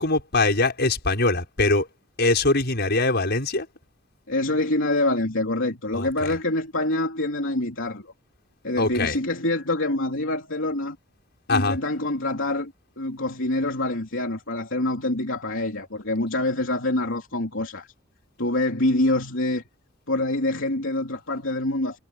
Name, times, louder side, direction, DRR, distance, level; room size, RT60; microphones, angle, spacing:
voice 1, 0.0-1.9 2.2-3.7 5.9-6.3 8.8-9.2 11.5-11.8, left 2 dB, 55° left, 6.2 m, -22 dB
voice 2, 4.3-8.1 8.6-11.0 11.5-17.9 18.4-19.6 20.1-22.0, left 2 dB, 70° left, 3.5 m, -26 dB
head